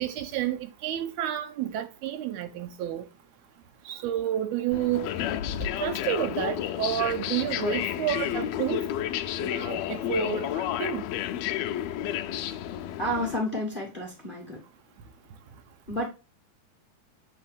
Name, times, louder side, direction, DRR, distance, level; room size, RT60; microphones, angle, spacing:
voice 1, 0.0-3.1 3.9-5.1 5.6-8.9 9.4-11.0, right 10 dB, 85° right, 2.1 m, -30 dB
sound 1, 4.7-13.4, left 11 dB, 85° left, 1.5 m, -31 dB
voice 2, 13.0-14.6 15.9-16.1, equal, 45° left, 0.6 m, -30 dB
7.4 x 3.9 x 3.3 m
omnidirectional pair, 3.5 m